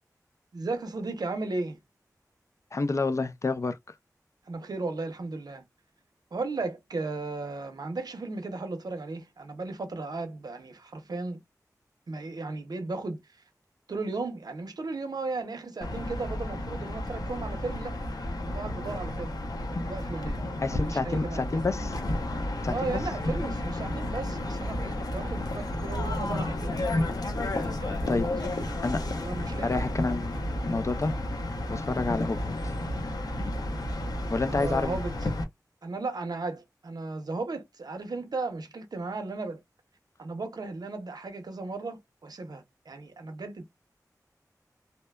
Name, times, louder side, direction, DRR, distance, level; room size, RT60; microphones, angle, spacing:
voice 1, 0.5-1.8 4.5-5.6 6.3-11.4 12.1-13.2 13.9-18.1 18.4-19.4 19.8-20.4 20.7-21.7 22.7-26.8 27.5-29.9 34.5-35.1 35.8-39.6 40.2-43.7, right 3 dB, 80° right, 0.6 m, -35 dB
voice 2, 2.7-3.8 20.6-22.0 22.6-22.9 28.1-28.3 28.8-29.0 29.6-31.1 31.7-32.4 32.6-32.7 34.3-35.0, left 3 dB, 50° left, 0.4 m, -29 dB
sound 1, 15.8-35.4, left 1 dB, 75° left, 0.7 m, -32 dB
2.7 x 2.1 x 2.2 m
wide cardioid pair, 70°, 7 cm